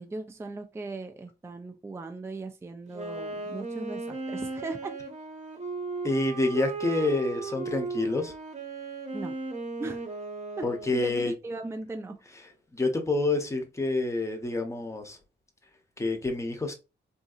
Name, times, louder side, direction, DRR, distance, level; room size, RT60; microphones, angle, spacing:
voice 1, 0.0-5.0 9.1-9.4 9.8-10.1 10.6-12.2, right 3 dB, 15° right, 0.4 m, -38 dB
Wind instrument woodwind instrument, 2.9-11.2, right 4 dB, 35° right, 0.9 m, -36 dB
voice 2, 6.0-8.3 10.6-11.3 12.7-15.2 16.0-16.7, left 2 dB, 15° left, 0.8 m, -28 dB
3.9 x 2.7 x 2.3 m
wide cardioid pair, 140°, 19 cm